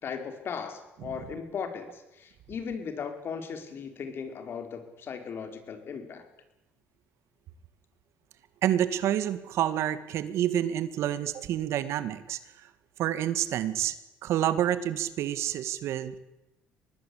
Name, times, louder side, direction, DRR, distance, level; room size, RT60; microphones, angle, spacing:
voice 1, 0.0-6.3, left 6 dB, 50° left, 7 dB, 4.6 m, -37 dB
voice 2, 8.6-12.7 13.0-14.0 14.2-16.2, right 11 dB, 70° right, 13 dB, 1.9 m, -28 dB
24.5 x 19.0 x 8.5 m, 0.96 s
supercardioid pair, 85°, 5 cm